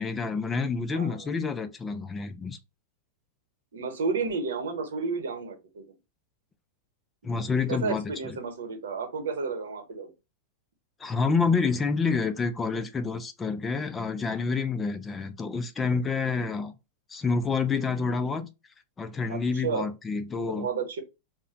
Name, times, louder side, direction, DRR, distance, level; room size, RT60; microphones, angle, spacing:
voice 1, 0.0-2.6 7.2-8.3 11.0-16.7 17.1-18.5 19.0-20.7, left 4 dB, 15° left, 0.4 m, -28 dB
voice 2, 0.9-1.3 3.7-5.8 7.7-10.1 19.3-19.9 20.3-21.0, right 4 dB, 85° right, 0.9 m, -32 dB
2.4 x 2.1 x 3.9 m
hypercardioid pair, 130°, 0 cm